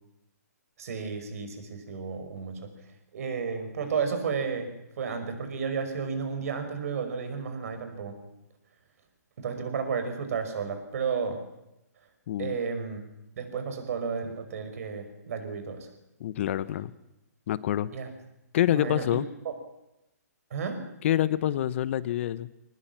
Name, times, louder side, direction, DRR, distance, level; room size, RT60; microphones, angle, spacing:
voice 1, 0.8-2.7 3.1-4.7 5.0-8.2 9.4-11.4 12.4-13.0 13.4-15.9 17.9-18.1 18.7-19.2 20.5-20.8, right 5 dB, 60° right, 8 dB, 5.6 m, -32 dB
voice 2, 12.3-12.6 16.2-16.9 17.5-17.9 18.5-19.3 21.0-22.5, left 12 dB, 45° left, 17 dB, 1.0 m, -26 dB
22.0 x 19.5 x 7.5 m, 0.91 s
hypercardioid pair, 145°, 9 cm